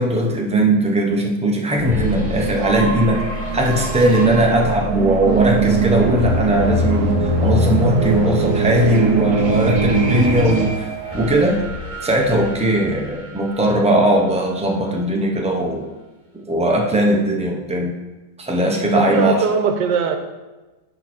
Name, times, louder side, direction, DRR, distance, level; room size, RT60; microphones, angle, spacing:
voice 1, 0.0-3.2 3.5-11.6 12.0-15.9 16.5-17.9 18.4-19.4, right 1 dB, 5° right, 0 dB, 0.5 m, -19 dB
sound 1, 1.8-14.5, right 1 dB, 25° right, 1.1 m, -25 dB
sound 2, 5.2-10.6, right 4 dB, 60° right, 1.3 m, -21 dB
voice 2, 18.9-20.2, right 6 dB, 80° right, 6 dB, 1.4 m, -20 dB
10.5 x 4.0 x 4.3 m, 1.1 s
omnidirectional pair, 1.9 m